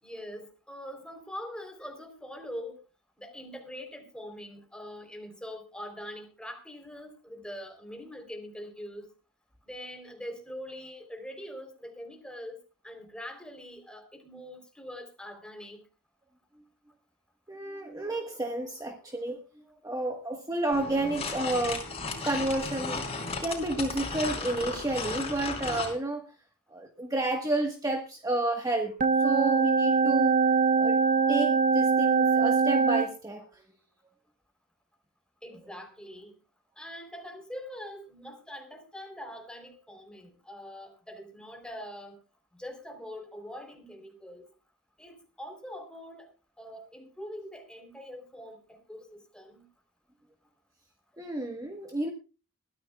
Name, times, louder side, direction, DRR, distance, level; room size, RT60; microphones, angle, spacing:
voice 1, 0.0-2.8 3.2-9.1 9.6-15.8 35.4-36.3 36.8-42.2 42.5-44.5 45.0-46.3 46.6-49.7, equal, 5° left, 5 dB, 3.6 m, -43 dB
voice 2, 17.5-19.4 19.8-21.9 22.2-26.3 26.7-30.4 30.8-31.0 31.3-33.6 51.2-52.1, right 2 dB, 15° right, 3 dB, 1.4 m, -31 dB
sound 1, 20.7-26.0, left 4 dB, 30° left, 4.7 m, -35 dB
sound 2, 29.0-33.1, right 5 dB, 40° right, 0.8 m, -23 dB
22.0 x 14.0 x 2.3 m, 0.33 s
head